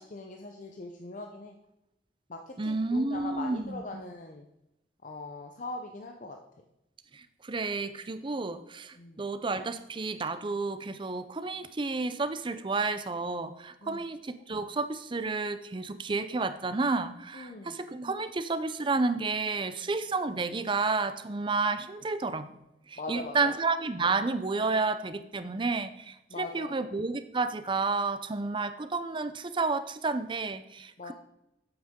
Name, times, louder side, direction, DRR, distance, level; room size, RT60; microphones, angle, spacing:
voice 1, 0.0-1.6 2.3-4.4 5.0-6.4 9.0-9.2 13.8-14.0 17.3-17.8 23.0-23.5 26.3-26.8 31.0-31.1, left 2 dB, 45° left, 3 dB, 0.7 m, -41 dB
voice 2, 2.6-4.0 7.1-22.5 22.9-31.1, right 3 dB, 25° right, 11 dB, 0.5 m, -31 dB
9.0 x 8.0 x 3.7 m, 0.87 s
head